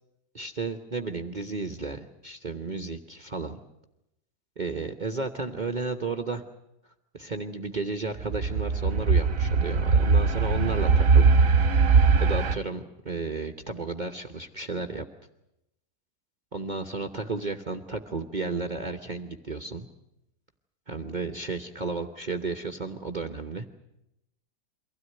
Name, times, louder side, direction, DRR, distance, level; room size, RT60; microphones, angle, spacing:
voice 1, 0.3-3.6 4.6-6.4 7.1-11.3 12.2-15.0 16.5-19.9 20.9-23.7, right 3 dB, 30° right, 5 dB, 1.0 m, -33 dB
sound 1, 8.2-12.6, right 4 dB, 55° right, 1.4 m, -21 dB
24.0 x 16.5 x 9.5 m, 0.86 s
omnidirectional pair, 1.8 m